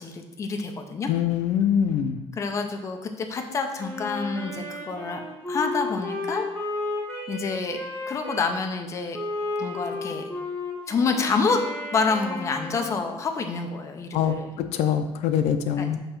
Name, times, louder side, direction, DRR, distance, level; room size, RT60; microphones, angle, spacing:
voice 1, 0.0-1.1 2.3-5.2 5.5-6.5 7.3-7.8 8.1-9.2 9.6-10.3 10.9-11.7 11.9-14.5 15.8-15.9, left 4 dB, 30° left, 5 dB, 0.5 m, -27 dB
voice 2, 1.1-2.2 14.1-16.0, left 8 dB, 80° left, 9 dB, 0.5 m, -24 dB
Wind instrument woodwind instrument, 3.8-8.5 9.1-13.1, left 2 dB, 15° left, 1.2 m, -33 dB
6.7 x 2.8 x 5.7 m, 1.0 s
cardioid pair, 175°, 11 cm